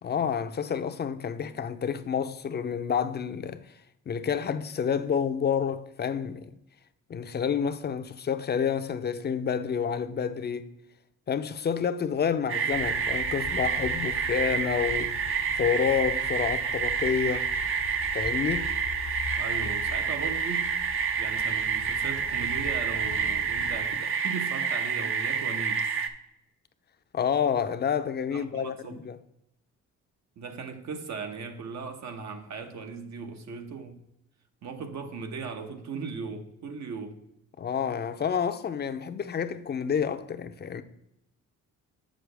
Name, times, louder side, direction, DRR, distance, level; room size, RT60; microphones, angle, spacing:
voice 1, 0.0-3.6 4.1-6.5 7.1-10.7 11.3-15.1 15.6-17.5 18.1-18.7 27.1-29.2 37.6-40.8, left 7 dB, 35° left, 0.6 m, -29 dB
sound 1, 12.5-26.1, right 6 dB, 45° right, 0.7 m, -28 dB
sound 2, 12.7-23.8, left 6 dB, 65° left, 1.0 m, -42 dB
voice 2, 19.4-20.7 21.1-25.9 28.3-29.1 30.4-34.0 34.6-37.2, right 5 dB, 65° right, 1.0 m, -38 dB
7.7 x 6.3 x 3.4 m
cardioid pair, 90°, 30 cm